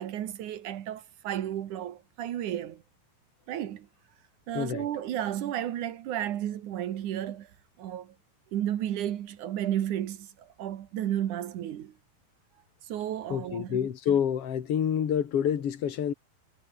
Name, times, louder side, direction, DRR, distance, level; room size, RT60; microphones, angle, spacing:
voice 1, 0.0-2.8 3.5-3.9 4.5-7.5 7.8-8.1 8.5-11.9 12.8-13.9, right 11 dB, 60° right, 2.3 m, -33 dB
voice 2, 4.5-4.9 13.3-16.1, left 9 dB, 45° left, 2.4 m, -28 dB
omnidirectional pair, 5.0 m